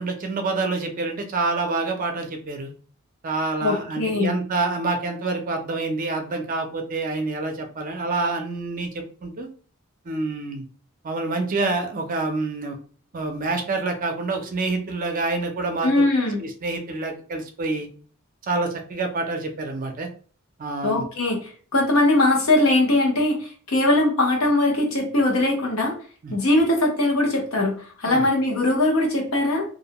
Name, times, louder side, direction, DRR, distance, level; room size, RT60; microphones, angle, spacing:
voice 1, 0.0-2.7 3.2-9.5 10.0-10.7 11.0-12.8 13.1-16.0 16.4-17.9 18.4-20.1 20.6-21.0 26.2-26.3 28.1-28.3, right 3 dB, 40° right, 4 dB, 0.5 m, -27 dB
voice 2, 3.6-4.4 15.8-16.4 20.8-21.4 21.7-25.9 26.3-29.6, left 2 dB, 80° left, 0 dB, 0.9 m, -21 dB
2.5 x 2.1 x 2.8 m, 0.42 s
head